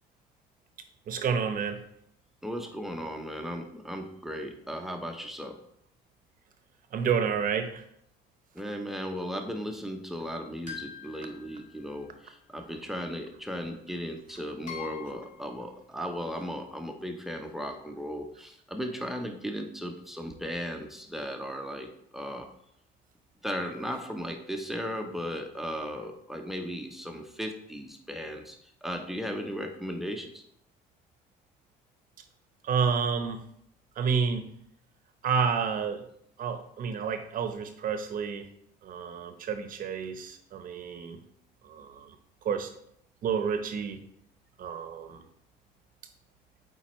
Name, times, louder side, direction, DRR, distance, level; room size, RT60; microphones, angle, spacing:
voice 1, 1.1-1.8 6.9-7.8 32.6-33.4 34.0-34.5 35.2-36.0 36.4-38.5 38.8-41.2 41.6-42.2 42.4-42.7 43.2-44.0 44.6-45.3, right 6 dB, 55° right, 7 dB, 0.9 m, -30 dB
voice 2, 2.4-5.6 8.5-22.5 23.4-30.4, equal, ahead, 4 dB, 0.7 m, -36 dB
sound 1, 10.7-12.2 13.6-13.7 14.7-15.5, left 7 dB, 45° left, 2.3 m, -44 dB
8.5 x 4.1 x 3.1 m, 0.72 s
cardioid pair, 110°, 17 cm